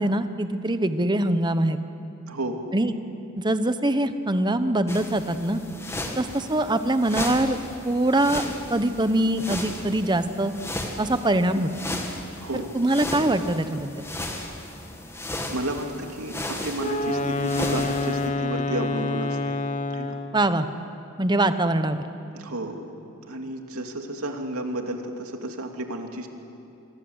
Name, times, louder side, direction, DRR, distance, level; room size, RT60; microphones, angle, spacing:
voice 1, 0.0-1.8 2.7-2.9 3.4-5.6 6.2-7.6 7.8-8.4 8.7-10.5 11.0-11.7 12.7-13.9 20.3-20.7 21.2-22.0, right 1 dB, 20° right, 10 dB, 1.0 m, -23 dB
voice 2, 2.3-2.6 11.5-11.6 12.4-12.7 15.5-19.6 19.9-20.2 22.3-22.8 23.3-26.3, right 1 dB, 90° right, 3 dB, 2.7 m, -32 dB
sound 1, 4.9-18.3, left 1 dB, 10° left, 2.3 m, -35 dB
Wind instrument woodwind instrument, 16.8-20.4, left 2 dB, 35° left, 1.2 m, -27 dB
25.5 x 24.5 x 8.1 m, 2.7 s
head